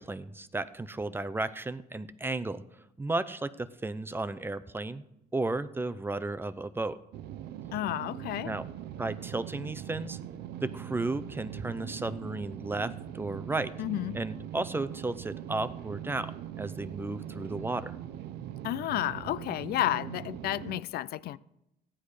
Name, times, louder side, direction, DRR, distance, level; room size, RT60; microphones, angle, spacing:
voice 1, 0.0-2.6 3.0-5.0 5.3-7.0 8.4-8.6 9.0-10.2 10.6-13.7 14.1-18.0, right 2 dB, 15° right, 0.6 m, -34 dB
sound 1, 7.1-20.8, right 11 dB, 75° right, 0.7 m, -41 dB
voice 2, 7.7-8.5 13.8-14.2 18.6-21.4, left 14 dB, 65° left, 0.5 m, -31 dB
15.0 x 10.0 x 4.9 m
cardioid pair, 110°, 17 cm